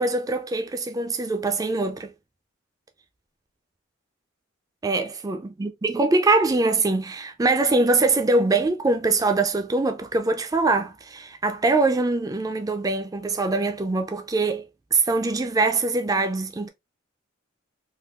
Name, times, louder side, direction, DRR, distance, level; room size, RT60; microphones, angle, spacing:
voice 1, 0.0-2.1 4.8-14.7 14.9-16.7, right 3 dB, 15° right, 0.3 m, -23 dB
3.6 x 2.3 x 2.3 m
head